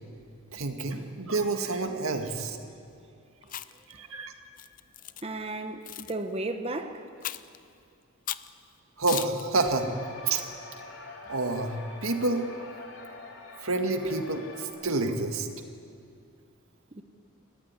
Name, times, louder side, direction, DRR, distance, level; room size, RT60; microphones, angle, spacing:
voice 1, 0.5-2.6 3.9-4.3 9.0-10.4 11.3-12.5 13.6-15.5, right 3 dB, 85° right, 2.1 m, -29 dB
Chewing mastication, 3.4-3.9 4.6-5.2 5.8-6.1 7.2-7.6 8.3-8.5 9.1-9.4, left 11 dB, 40° left, 0.5 m, -36 dB
voice 2, 5.2-7.1 16.9-17.0, right 2 dB, 30° right, 1.0 m, -34 dB
sound 1, 9.5-14.7, left 3 dB, 65° left, 4.2 m, -45 dB
28.5 x 15.0 x 9.8 m
head